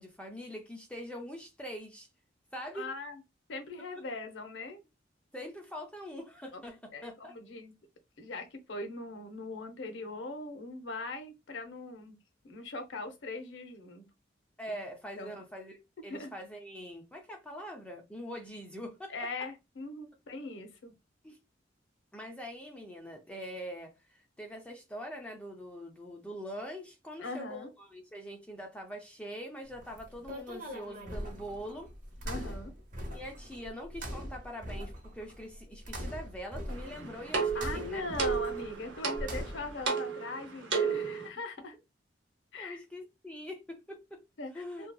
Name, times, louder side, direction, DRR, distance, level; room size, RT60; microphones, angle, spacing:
voice 1, 0.0-2.1 2.5-2.9 5.3-7.3 14.6-19.1 21.2-21.4 22.1-31.9 33.1-38.1 42.6-44.2 44.5-44.9, equal, 5° left, 0.4 m, -43 dB
voice 2, 2.7-3.2 3.5-4.8 6.5-6.6 6.9-7.7 8.2-12.2 12.4-14.0 15.2-15.4 16.1-16.3 19.1-20.9 27.2-27.7 32.3-32.7 37.5-41.8 42.5-42.8 44.4-44.9, left 2 dB, 80° left, 0.6 m, -40 dB
sound 1, 29.7-39.9, equal, 45° right, 0.7 m, -42 dB
sound 2, 36.7-41.3, right 5 dB, 75° right, 0.8 m, -33 dB
2.7 x 2.3 x 2.2 m
head